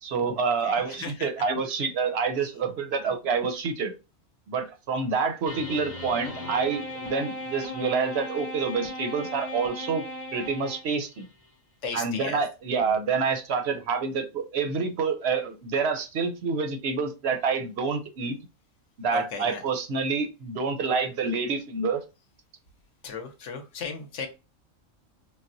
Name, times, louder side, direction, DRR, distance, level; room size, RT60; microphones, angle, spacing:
voice 1, 0.0-3.9 4.5-10.0 10.3-11.3 11.9-18.4 19.0-22.0, right 5 dB, 65° right, 7 dB, 0.8 m, -27 dB
voice 2, 0.6-1.3 6.2-6.5 11.8-12.4 12.8-13.0 19.1-19.6 23.0-24.3, left 4 dB, 70° left, 5 dB, 1.0 m, -36 dB
sound 1, 5.5-11.3, left 1 dB, 45° left, 0.6 m, -37 dB
4.0 x 2.1 x 2.5 m, 0.28 s
omnidirectional pair, 1.4 m